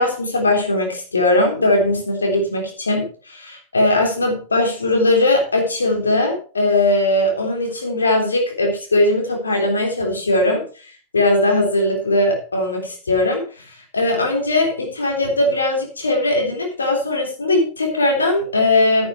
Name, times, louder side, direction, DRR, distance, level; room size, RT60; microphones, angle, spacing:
voice 1, 0.0-19.1, left 2 dB, 75° left, 2 dB, 3.4 m, -19 dB
10.0 x 9.5 x 4.6 m, 0.39 s
figure-of-eight pair, 90°, 0 cm